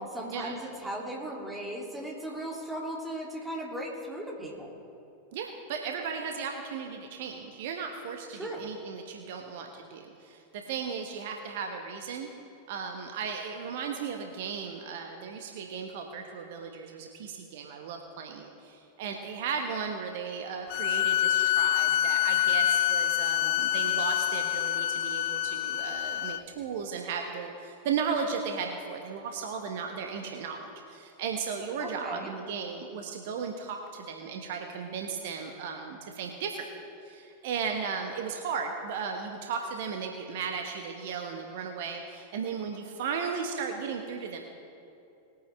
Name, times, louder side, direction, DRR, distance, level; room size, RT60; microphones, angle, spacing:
voice 1, 0.0-4.7 8.3-8.7 31.8-32.3, right 1 dB, 5° right, -2 dB, 2.6 m, -37 dB
voice 2, 5.3-12.3 12.7-36.7 37.0-44.4, right 6 dB, 55° right, 3 dB, 1.1 m, -35 dB
sound 1, 20.7-26.4, left 12 dB, 45° left, 0.3 m, -26 dB
20.5 x 9.1 x 3.3 m, 2.7 s
figure-of-eight pair, 90°, 0 cm